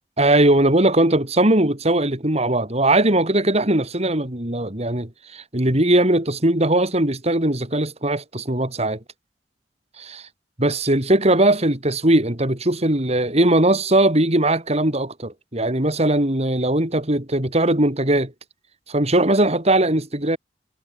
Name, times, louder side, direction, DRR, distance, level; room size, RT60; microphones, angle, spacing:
voice 1, 0.2-9.0 10.0-10.3 10.6-18.3 18.9-20.4, right 1 dB, 40° right, 4.5 m, -19 dB
head